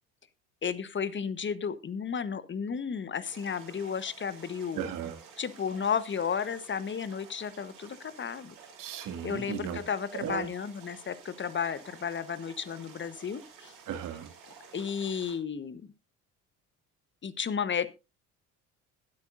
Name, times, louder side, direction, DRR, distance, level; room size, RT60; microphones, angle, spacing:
voice 1, 0.6-4.9 5.4-8.5 9.2-13.7 14.7-15.9 17.2-17.9, left 6 dB, 30° left, 1.1 m, -33 dB
sound 1, 3.2-15.3, right 6 dB, 75° right, 5.7 m, -52 dB
voice 2, 4.7-5.2 8.8-9.8 10.2-10.4 13.9-14.3, right 8 dB, 55° right, 2.3 m, -35 dB
21.5 x 8.3 x 2.6 m
hypercardioid pair, 60°, 38 cm